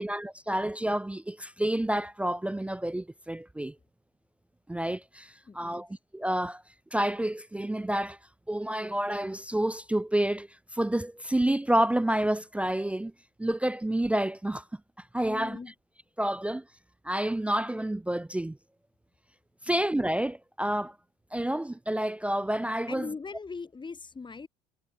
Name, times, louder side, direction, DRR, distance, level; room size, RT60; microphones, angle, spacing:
voice 1, 0.0-3.7 4.7-5.9 6.1-6.6 6.9-8.2 8.5-10.5 10.7-13.1 13.4-14.6 15.1-15.6 16.2-16.6 17.0-18.6 19.6-20.9 21.3-23.1, right 1 dB, 5° right, 0.5 m, -29 dB
voice 2, 5.4-5.9 15.3-15.7 19.6-19.9 22.9-24.5, left 4 dB, 25° left, 3.1 m, -40 dB
hypercardioid pair, 65°, 19 cm